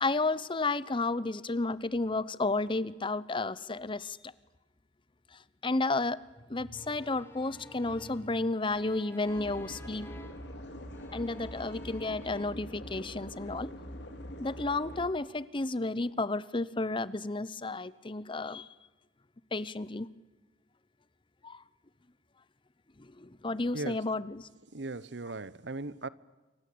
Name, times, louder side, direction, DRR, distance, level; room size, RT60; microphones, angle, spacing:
voice 1, 0.0-4.3 5.6-6.2 6.5-10.1 11.1-13.7 14.4-18.7 19.5-20.1 21.4-21.6 23.0-24.5, left 2 dB, 30° left, 0.9 m, -32 dB
sound 1, 6.7-10.6 10.9-12.5, equal, 15° left, 2.2 m, -52 dB
sound 2, 9.2-15.1, equal, 75° left, 3.4 m, -44 dB
voice 2, 23.7-24.0 24.7-26.1, right 2 dB, 80° right, 1.0 m, -38 dB
27.5 x 24.5 x 8.7 m
head